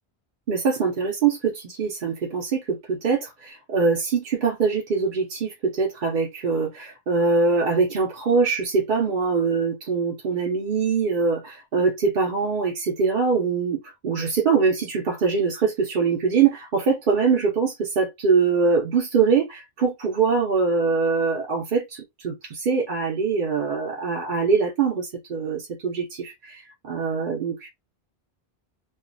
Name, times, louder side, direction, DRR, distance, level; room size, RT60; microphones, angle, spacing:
voice 1, 0.5-27.7, right 5 dB, 60° right, 0.8 m, -23 dB
2.4 x 2.2 x 2.5 m
omnidirectional pair, 1.0 m